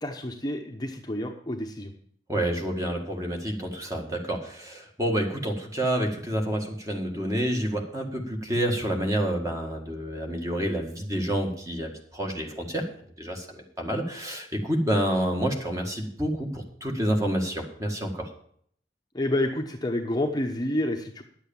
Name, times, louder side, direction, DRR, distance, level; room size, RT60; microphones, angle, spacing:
voice 1, 0.0-1.9 19.1-21.2, left 1 dB, 20° left, 3 dB, 0.9 m, -29 dB
voice 2, 2.3-12.8 13.2-18.3, right 1 dB, 20° right, 2 dB, 1.8 m, -28 dB
10.5 x 8.0 x 7.1 m, 0.63 s
head